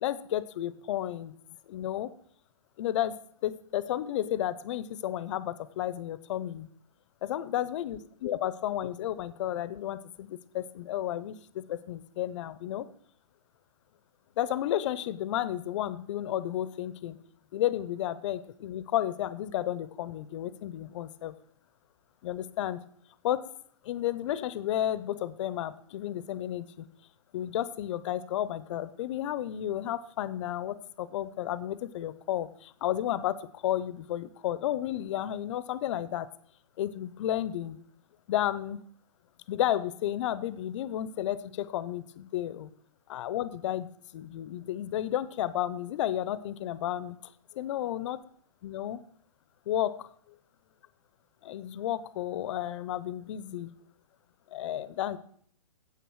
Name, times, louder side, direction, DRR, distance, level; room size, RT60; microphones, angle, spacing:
voice 1, 0.0-1.3 1.7-2.1 2.8-6.7 7.2-12.9 14.4-17.2 17.5-21.3 22.2-22.8 23.2-23.4 23.8-26.9 27.3-36.3 36.8-37.8 38.3-38.8 39.5-42.7 43.1-47.2 47.5-48.2 48.6-49.0 49.7-50.4 51.4-53.7 54.5-55.2, left 12 dB, 50° left, 16 dB, 0.8 m, -32 dB
9.4 x 8.1 x 6.3 m, 0.62 s
hypercardioid pair, 135°, 20 cm